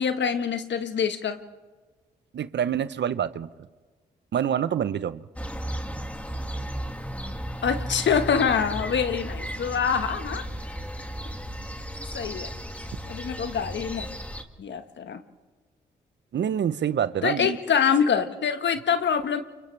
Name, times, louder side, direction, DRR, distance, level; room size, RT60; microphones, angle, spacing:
voice 1, 0.0-1.4 7.6-10.5 12.1-12.5 13.1-14.1 14.6-15.2 17.2-19.4, left 7 dB, 60° left, 9 dB, 1.4 m, -25 dB
voice 2, 2.3-3.5 4.3-5.2 16.3-17.6, right 9 dB, 60° right, 15 dB, 0.9 m, -26 dB
sound 1, 5.4-14.4, equal, 5° left, 2.0 m, -35 dB
30.0 x 29.0 x 3.4 m, 1.3 s
hypercardioid pair, 40°, 21 cm